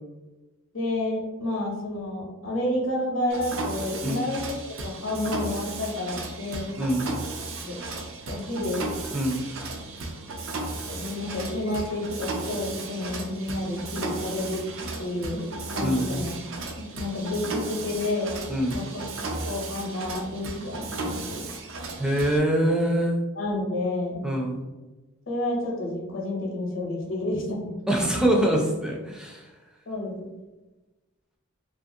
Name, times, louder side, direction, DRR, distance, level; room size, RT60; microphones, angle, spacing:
voice 1, 0.7-6.7 7.6-7.8 8.3-8.8 10.9-14.6 15.0-16.3 16.8-18.3 18.7-19.0 19.5-21.5 23.4-24.2 25.3-27.8 29.9-30.1, left 1 dB, 70° left, -1 dB, 0.8 m, -30 dB
Mechanisms, 3.3-22.4, right 2 dB, 70° right, 0.5 m, -35 dB
voice 2, 6.8-7.1 9.1-9.4 15.8-16.2 18.5-18.8 22.0-23.2 24.2-24.6 27.9-29.5, right 1 dB, 5° right, -2 dB, 0.4 m, -24 dB
2.8 x 2.5 x 2.7 m, 1.1 s
head